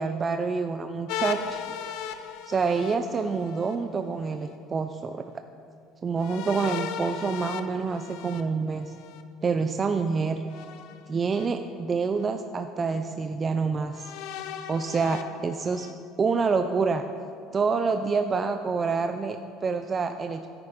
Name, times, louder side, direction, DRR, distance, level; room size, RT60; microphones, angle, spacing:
voice 1, 0.0-1.6 2.5-5.2 6.0-8.9 9.4-10.4 11.1-14.1 14.7-15.9 16.2-17.0 17.5-20.5, right 5 dB, 30° right, 8 dB, 0.5 m, -27 dB
sound 1, 1.1-3.8 6.2-9.2 10.5-11.5 12.2-12.3 13.9-15.9, left 9 dB, 70° left, 0.6 m, -37 dB
9.8 x 9.7 x 5.1 m, 2.4 s
supercardioid pair, 95°, 0 cm